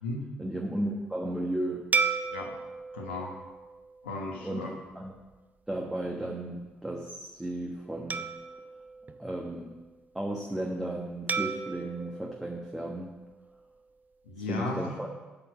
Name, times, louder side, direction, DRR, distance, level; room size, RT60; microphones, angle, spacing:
voice 1, 0.4-1.8 4.4-5.1 5.7-8.3 9.2-9.7 10.1-13.1 14.5-15.1, right 1 dB, 10° right, 0 dB, 1.2 m, -34 dB
sound 1, 1.9-4.6 5.2-5.4 8.1-9.9 11.3-13.6, right 5 dB, 30° right, 0.5 m, -35 dB
voice 2, 2.3-2.6 2.9-3.3 4.0-4.7 14.2-15.0, left 2 dB, 85° left, -1 dB, 1.3 m, -35 dB
8.6 x 4.5 x 7.2 m, 1.2 s
hypercardioid pair, 45°, 6 cm